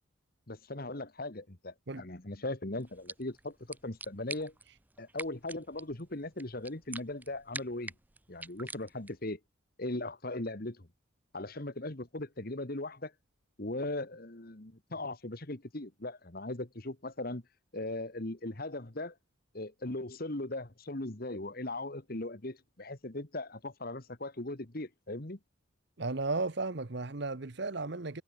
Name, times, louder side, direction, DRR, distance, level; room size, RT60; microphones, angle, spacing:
voice 1, 0.5-4.5 5.0-7.9 8.3-9.4 9.8-10.9 11.3-13.1 13.6-17.4 17.7-19.2 19.5-25.4, left 2 dB, 45° left, 1.6 m, -39 dB
sound 1, 2.8-9.3, right 3 dB, 10° right, 0.4 m, -47 dB
voice 2, 26.0-28.2, right 3 dB, 55° right, 1.0 m, -34 dB
head